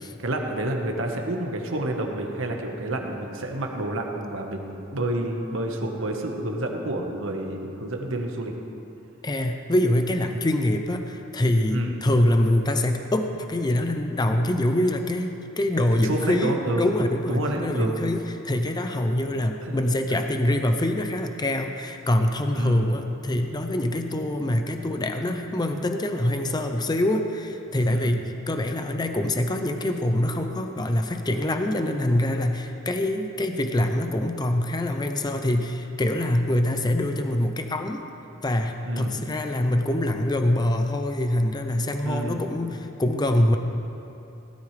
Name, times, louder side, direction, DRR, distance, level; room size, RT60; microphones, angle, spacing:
voice 1, 0.2-8.5 11.7-11.9 16.0-16.9 17.3-17.9 19.6-19.8 20.1-20.2 22.5-22.9 27.9-28.2 38.8-39.2 42.0-42.5, right 1 dB, 75° right, 2 dB, 1.4 m, -29 dB
voice 2, 9.2-38.0 38.4-43.6, left 1 dB, 20° left, 6 dB, 0.6 m, -24 dB
17.0 x 12.5 x 3.3 m, 2.8 s
head